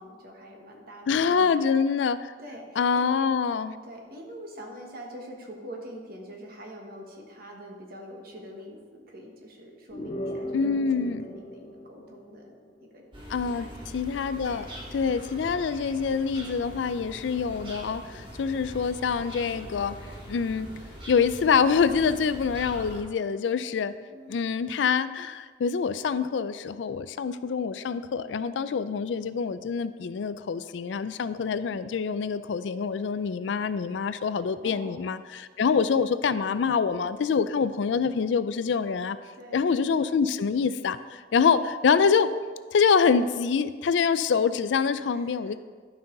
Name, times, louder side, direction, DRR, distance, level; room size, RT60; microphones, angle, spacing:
voice 1, 0.0-1.7 2.4-3.0 3.8-12.5 12.8-13.0 13.5-13.9 14.8-15.1 24.1-24.4 34.6-35.4 39.3-39.7 45.1-45.6, equal, 55° right, 1 dB, 1.4 m, -45 dB
voice 2, 1.1-2.3 2.8-3.8 10.5-11.3 13.3-20.7 21.1-23.9 24.3-39.2 39.5-42.3 42.7-45.6, left 6 dB, 75° left, 13 dB, 0.4 m, -25 dB
sound 1, 9.9-12.8, left 1 dB, 40° left, 0.7 m, -37 dB
sound 2, 13.1-23.0, equal, 30° right, 2.0 m, -42 dB
12.0 x 5.6 x 3.9 m, 1.5 s
head